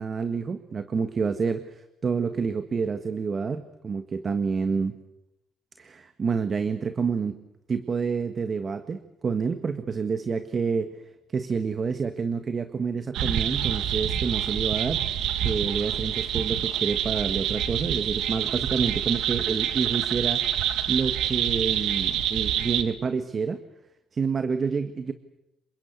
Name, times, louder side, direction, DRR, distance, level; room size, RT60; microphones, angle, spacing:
voice 1, 0.0-5.0 5.8-7.4 7.7-11.0 11.3-15.0 15.4-20.5 20.9-23.6 24.1-25.1, right 5 dB, 40° right, 10 dB, 1.5 m, -28 dB
sound 1, 13.1-22.8, right 10 dB, 85° right, 1.8 m, -27 dB
28.0 x 24.5 x 8.2 m, 0.89 s
cardioid pair, 90°, 0 cm